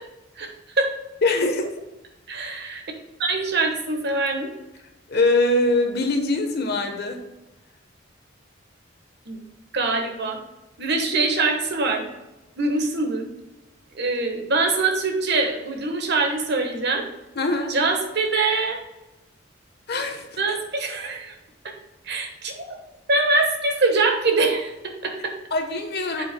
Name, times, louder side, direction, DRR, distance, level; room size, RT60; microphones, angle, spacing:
voice 1, 0.4-0.9 2.3-2.8 3.2-4.5 9.3-9.4 9.7-10.4 10.8-12.0 12.6-13.3 13.9-17.0 17.7-18.8 20.4-21.3 22.0-22.7 23.1-25.3 26.2-26.3, right 3 dB, 60° right, 4 dB, 1.3 m, -23 dB
voice 2, 1.2-1.7 5.1-7.2 17.3-17.8 19.9-20.3 25.5-26.2, left 2 dB, 55° left, 5 dB, 1.1 m, -22 dB
7.9 x 7.8 x 2.2 m, 1.0 s
head